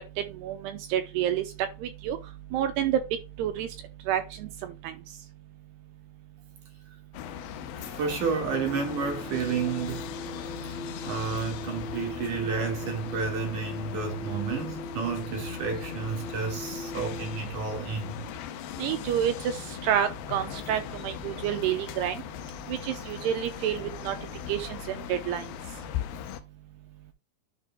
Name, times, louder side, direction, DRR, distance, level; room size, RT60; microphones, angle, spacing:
voice 1, 0.4-1.4 1.8-2.2 2.5-3.0 3.4-3.7 4.1-4.9 18.8-19.6 19.8-22.2 22.7-24.2 24.5-25.5, right 10 dB, 80° right, 2.4 m, -29 dB
sound 1, 7.1-26.4, left 12 dB, 80° left, 2.2 m, -39 dB
voice 2, 7.8-10.1 11.1-18.2, right 5 dB, 60° right, 2.2 m, -31 dB
sound 2, 8.5-17.4, left 1 dB, 60° left, 3.3 m, -40 dB
11.0 x 5.2 x 2.2 m
omnidirectional pair, 5.4 m